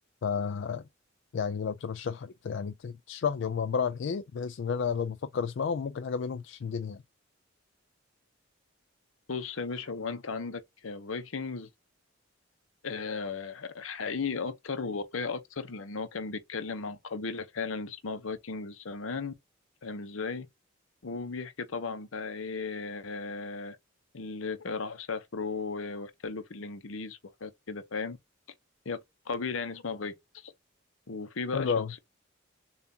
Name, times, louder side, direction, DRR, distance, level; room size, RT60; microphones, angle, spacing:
voice 1, 0.2-0.8 1.3-7.0 31.5-31.9, left 6 dB, 65° left, 0.3 m, -31 dB
voice 2, 9.3-11.7 12.8-19.3 19.8-20.5 21.0-23.8 24.1-28.2 28.8-29.0 29.3-30.5 31.1-31.7, left 4 dB, 80° left, 0.8 m, -36 dB
7.0 x 2.4 x 2.7 m
head